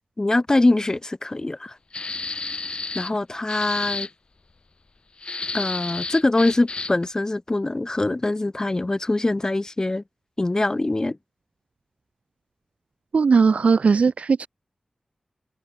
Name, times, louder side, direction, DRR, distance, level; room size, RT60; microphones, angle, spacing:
voice 1, 0.2-1.7 2.9-4.1 5.5-10.0 10.4-11.2, left 2 dB, 30° left, 4.7 m, -23 dB
sound 1, 1.9-3.2 3.5-4.1 5.2-7.1, left 3 dB, 50° left, 6.0 m, -31 dB
voice 2, 13.1-14.5, right 5 dB, 80° right, 1.8 m, -18 dB
wide cardioid pair, 80°, 2 cm